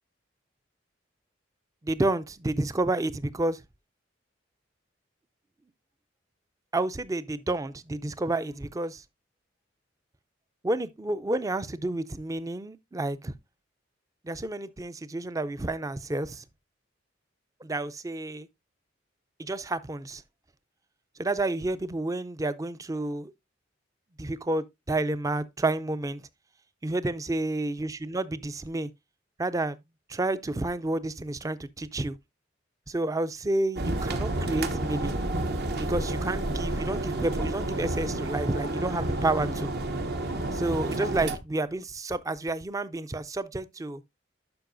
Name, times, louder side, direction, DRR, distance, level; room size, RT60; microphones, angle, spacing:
voice 1, 1.8-3.6 6.7-9.0 10.6-13.3 14.2-16.4 17.6-18.5 19.4-20.2 21.2-23.3 24.2-26.2 26.8-28.9 29.4-29.8 30.1-32.2 32.9-35.2 35.9-39.7 40.5-44.0, right 2 dB, 20° right, 0.4 m, -30 dB
sound 1, 33.8-41.4, right 1 dB, 55° right, 0.9 m, -30 dB
11.5 x 5.3 x 2.5 m
head